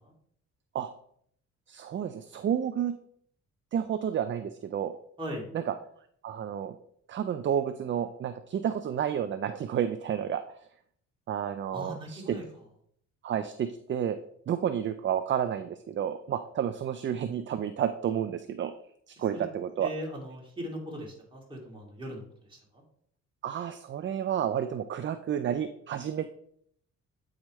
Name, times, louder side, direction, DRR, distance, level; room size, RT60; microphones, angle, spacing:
voice 1, 1.7-3.0 3.7-4.9 5.5-5.7 6.2-6.7 7.1-10.4 11.3-12.4 13.2-14.2 14.5-18.7 19.1-19.9 23.4-26.3, right 9 dB, 40° right, 10 dB, 0.4 m, -30 dB
voice 2, 11.7-12.4 19.3-19.5 19.8-22.2, equal, 15° right, -2 dB, 2.4 m, -38 dB
8.4 x 4.9 x 3.1 m, 0.65 s
cardioid pair, 90°, 30 cm